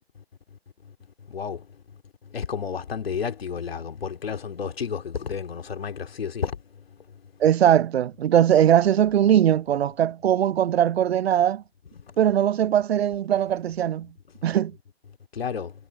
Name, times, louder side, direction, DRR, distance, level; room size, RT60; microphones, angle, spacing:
voice 1, 1.3-1.6 2.3-6.6 15.3-15.7, left 6 dB, 65° left, 3.2 m, -31 dB
voice 2, 7.4-11.6 12.2-14.1 14.4-14.7, right 10 dB, 70° right, 0.5 m, -20 dB
hypercardioid pair, 155°, 33 cm